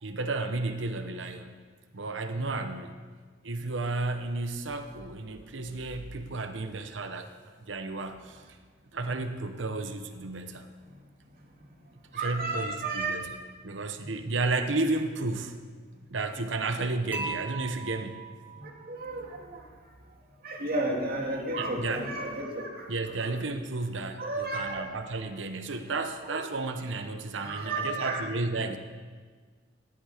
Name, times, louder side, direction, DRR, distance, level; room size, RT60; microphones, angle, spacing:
voice 1, 0.0-1.6 1.9-3.0 3.4-7.3 7.7-8.4 8.9-10.7 12.2-13.4 13.6-15.6 16.1-18.2 21.6-22.1 22.9-28.8, right 3 dB, 70° right, 7 dB, 1.0 m, -32 dB
voice 2, 2.3-2.7 9.1-9.2 10.8-10.9 12.1-13.3 14.0-14.1 18.5-19.9 20.4-23.3 24.2-25.2 26.2-26.4 27.4-28.2, right 2 dB, 50° right, 0 dB, 2.5 m, -34 dB
Dishes pots and pans / Chink clink, 17.1-19.2, right 4 dB, 10° right, 2.9 m, -39 dB
16.5 x 11.5 x 5.0 m, 1.5 s
head